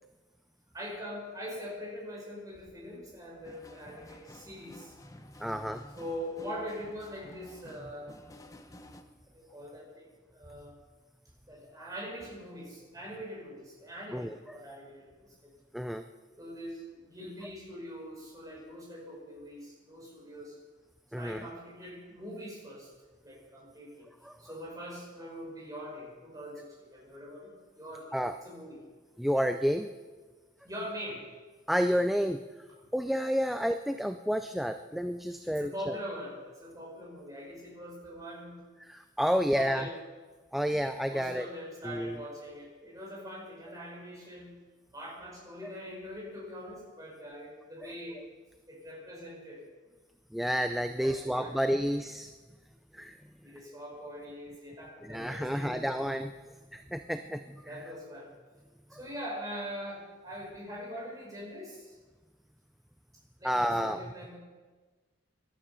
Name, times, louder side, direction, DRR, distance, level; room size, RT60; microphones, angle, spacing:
voice 1, 0.7-4.9 6.0-8.1 9.3-10.7 11.5-15.3 16.4-20.6 21.1-22.9 23.2-24.1 24.4-28.2 28.4-28.8 30.6-31.2 35.4-38.6 39.3-40.0 41.1-44.6 44.9-48.2 48.7-49.6 51.0-51.5 53.4-55.8 57.6-58.3 58.9-62.0 63.4-64.4, equal, 20° right, -3 dB, 5.5 m, -43 dB
sound 1, 3.4-9.0, left 1 dB, 15° left, 0.9 m, -52 dB
voice 2, 5.4-5.9 14.1-14.6 15.7-16.0 21.1-21.5 24.2-24.4 28.1-28.4 29.2-29.9 31.7-32.4 32.9-35.9 38.8-39.9 40.5-41.5 41.8-42.2 45.6-45.7 50.3-52.3 52.9-53.2 55.0-56.3 56.7-57.7 63.4-64.0, equal, ahead, 8 dB, 0.4 m, -30 dB
18.5 x 12.5 x 5.7 m, 1.4 s
head